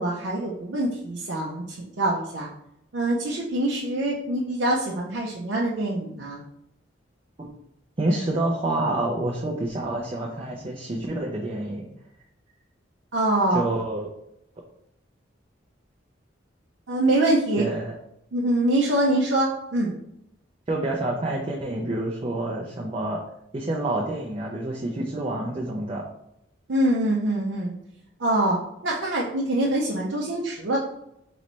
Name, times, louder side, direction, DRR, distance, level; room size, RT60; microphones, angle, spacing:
voice 1, 0.0-2.5 2.9-6.4 13.1-13.6 16.9-17.6 18.3-20.0 26.7-27.7 28.2-30.8, right 1 dB, 80° right, -3 dB, 0.6 m, -24 dB
voice 2, 8.0-11.9 13.5-14.1 17.6-18.0 20.7-23.2 23.5-26.0, right 1 dB, 30° right, -2 dB, 0.5 m, -28 dB
3.1 x 3.1 x 4.0 m, 0.79 s
head